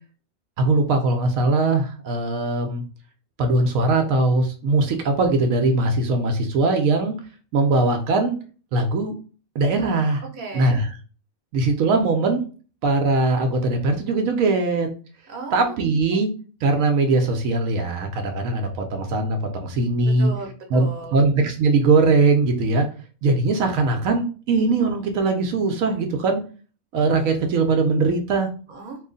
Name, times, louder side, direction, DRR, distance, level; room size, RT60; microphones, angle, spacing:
voice 1, 0.6-2.8 3.4-7.1 7.5-8.4 8.7-9.1 9.5-10.2 10.5-10.9 11.5-12.4 12.8-14.9 15.5-16.3 16.6-20.3 20.7-22.9 23.2-26.4 26.9-28.5, right 3 dB, 75° right, 4 dB, 1.0 m, -20 dB
voice 2, 10.2-10.8 15.3-15.7 20.0-21.2 28.7-29.0, right 2 dB, 40° right, 2 dB, 0.8 m, -35 dB
3.0 x 2.4 x 3.8 m, 0.38 s
omnidirectional pair, 1.5 m